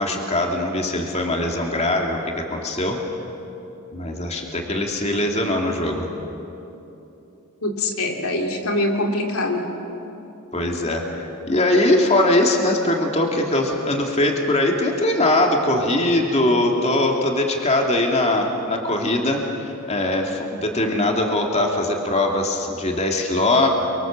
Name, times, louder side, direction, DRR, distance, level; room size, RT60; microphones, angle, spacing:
voice 1, 0.0-3.0 3.9-6.1 10.5-23.7, left 1 dB, 30° left, 1 dB, 2.6 m, -21 dB
voice 2, 7.6-9.6, left 1 dB, 75° left, 2 dB, 3.3 m, -23 dB
29.0 x 24.5 x 7.5 m, 2.9 s
head